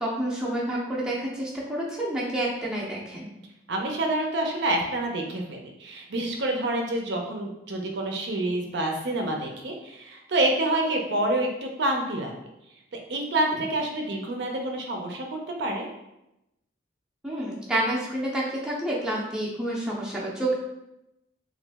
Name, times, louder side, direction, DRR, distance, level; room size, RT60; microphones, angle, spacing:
voice 1, 0.0-3.3 17.2-20.5, right 1 dB, 5° right, -5 dB, 0.5 m, -29 dB
voice 2, 3.7-12.3 13.1-15.9, right 1 dB, 60° right, 1 dB, 0.5 m, -27 dB
2.9 x 2.5 x 3.4 m, 0.88 s
head